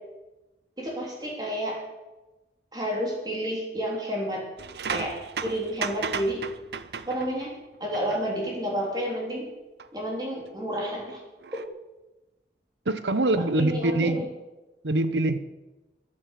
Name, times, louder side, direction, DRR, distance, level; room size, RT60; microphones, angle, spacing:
voice 1, 0.8-1.8 2.7-4.4 4.9-5.2 5.4-6.4 7.1-7.5 7.8-9.5 9.9-11.2 11.5-11.6 13.4-14.2, equal, 25° right, -2 dB, 3.4 m, -30 dB
sound 1, 4.6-7.5 7.9-8.2 9.8-9.9 11.4-11.7, right 5 dB, 70° right, 0.7 m, -34 dB
voice 2, 12.9-14.3 14.8-15.4, right 2 dB, 85° right, 11 dB, 1.0 m, -24 dB
14.5 x 11.0 x 6.7 m, 1.1 s
head